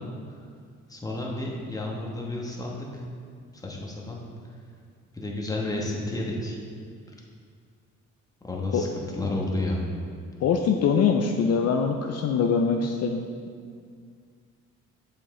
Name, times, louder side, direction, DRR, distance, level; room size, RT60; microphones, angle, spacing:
voice 1, 0.9-3.0 3.6-4.2 5.1-6.6 8.4-8.9 9.1-9.8, left 2 dB, 10° left, -2 dB, 1.2 m, -31 dB
voice 2, 10.4-13.3, left 6 dB, 55° left, 4 dB, 0.5 m, -23 dB
7.1 x 5.2 x 3.7 m, 2.1 s
cardioid pair, 90°, 30 cm